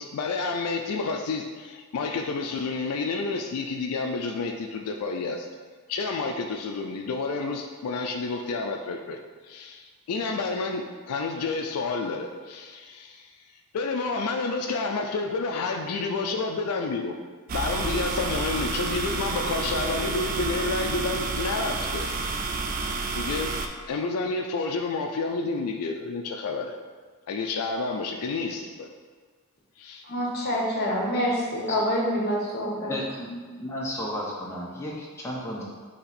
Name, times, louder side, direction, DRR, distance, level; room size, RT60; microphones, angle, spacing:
voice 1, 0.0-5.5 5.9-9.2 9.4-13.3 13.7-17.2 17.5-22.1 23.2-23.5 23.9-26.7 27.3-28.9 29.8-30.0, left 3 dB, 80° left, 3 dB, 0.4 m, -30 dB
sound 1, 17.5-23.7, right 3 dB, 40° right, 0.3 m, -29 dB
voice 2, 30.0-33.4, equal, 45° left, -3 dB, 1.0 m, -27 dB
voice 3, 32.7-33.3 33.6-35.6, equal, 10° left, -4 dB, 0.5 m, -33 dB
4.2 x 3.0 x 4.0 m, 1.5 s
head